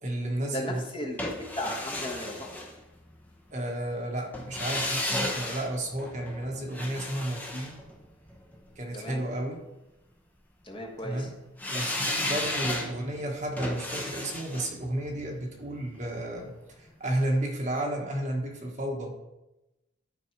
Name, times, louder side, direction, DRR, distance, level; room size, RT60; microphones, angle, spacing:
voice 1, 0.0-0.9 3.5-7.8 8.7-9.7 11.0-11.4 11.7-19.2, right 1 dB, 35° right, 1 dB, 1.3 m, -32 dB
voice 2, 0.5-1.3 1.6-2.5 8.9-9.2 10.6-11.3, left 1 dB, 25° left, 0 dB, 1.3 m, -35 dB
sound 1, 1.2-3.3 4.3-8.6 11.6-16.6 16.9-17.0, left 1 dB, 10° left, 1.0 m, -34 dB
12.0 x 5.4 x 4.7 m, 0.97 s
head